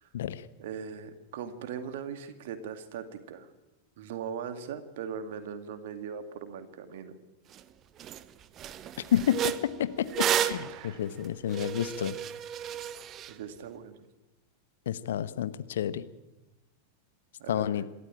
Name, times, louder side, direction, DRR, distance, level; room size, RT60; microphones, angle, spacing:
voice 1, 0.6-3.5 4.0-7.2 10.7-11.0 13.3-14.0 17.4-17.9, right 7 dB, 55° right, 9 dB, 2.2 m, -40 dB
sound 1, 7.5-7.6 8.0-8.2 8.6-13.3, right 10 dB, 30° right, 0.9 m, -32 dB
voice 2, 9.1-9.5 9.8-12.1 14.9-16.0 17.5-17.8, left 10 dB, 60° left, 14 dB, 1.0 m, -30 dB
26.5 x 13.0 x 9.0 m, 1.1 s
figure-of-eight pair, 90°, 0 cm